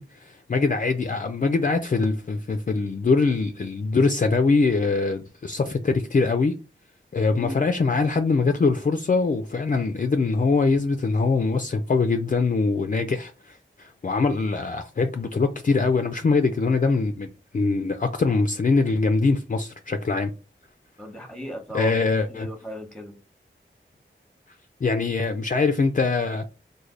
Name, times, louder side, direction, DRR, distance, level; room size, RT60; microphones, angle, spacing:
voice 1, 0.0-6.5 7.1-20.3 21.7-22.5 24.8-26.4, left 4 dB, 40° left, 0.4 m, -23 dB
voice 2, 7.3-7.6 21.0-23.1, equal, 5° left, 0.9 m, -36 dB
3.2 x 2.2 x 3.7 m
wide cardioid pair, 55°, 20 cm